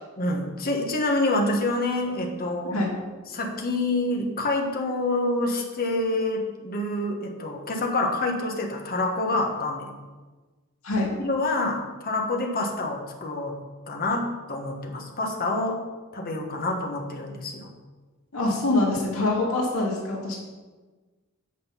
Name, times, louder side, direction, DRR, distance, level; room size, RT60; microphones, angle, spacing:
voice 1, 0.2-2.7 3.3-9.9 11.2-13.6 13.9-15.8 16.1-17.7, left 2 dB, 45° left, 1 dB, 1.4 m, -27 dB
voice 2, 18.3-20.4, left 2 dB, 75° left, -3 dB, 2.3 m, -24 dB
8.6 x 6.2 x 5.7 m, 1.3 s
head